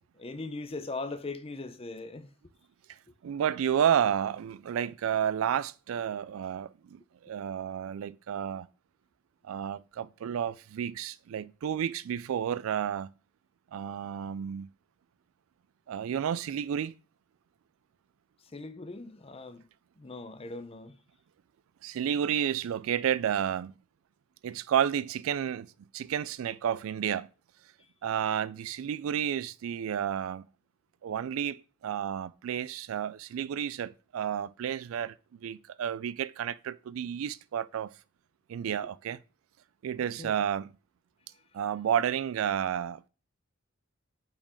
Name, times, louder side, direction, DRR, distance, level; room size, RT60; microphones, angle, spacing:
voice 1, 0.2-2.3 4.8-4.9 18.5-19.6 20.0-20.9 40.2-40.3, left 3 dB, 25° left, 0.6 m, -40 dB
voice 2, 3.2-8.7 9.4-13.1 13.7-14.7 15.9-16.9 21.8-23.7 24.4-25.7 25.9-27.3 28.0-30.5 31.0-35.2 35.4-37.9 38.5-39.2 39.8-40.7 41.5-43.1, right 9 dB, 70° right, 0.3 m, -31 dB
5.7 x 4.5 x 5.0 m
head